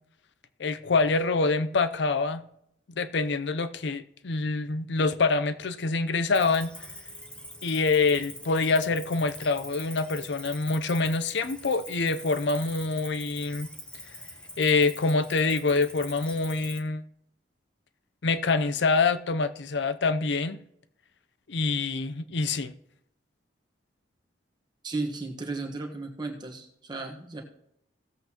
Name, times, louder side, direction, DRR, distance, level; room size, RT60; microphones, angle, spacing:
voice 1, 0.6-2.4 3.0-6.7 7.6-13.7 14.6-17.0 18.2-20.6 21.5-22.7, left 3 dB, 70° left, 0.6 m, -26 dB
Cricket, 6.3-16.8, left 1 dB, 5° left, 0.9 m, -44 dB
voice 2, 24.8-27.4, right 3 dB, 25° right, 1.3 m, -34 dB
17.0 x 7.8 x 2.9 m
head